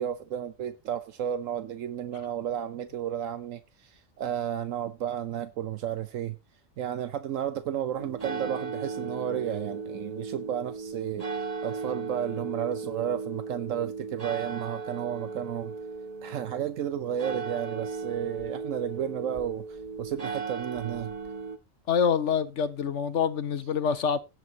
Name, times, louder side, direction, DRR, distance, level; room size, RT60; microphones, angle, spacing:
voice 1, 0.0-6.4 6.8-11.3 11.6-15.7 16.2-21.1, right 10 dB, 80° right, 1.1 m, -32 dB
sound 1, 8.0-21.6, right 4 dB, 30° right, 1.5 m, -36 dB
voice 2, 21.9-24.2, left 7 dB, 65° left, 1.3 m, -26 dB
17.0 x 7.8 x 2.8 m
omnidirectional pair, 1.3 m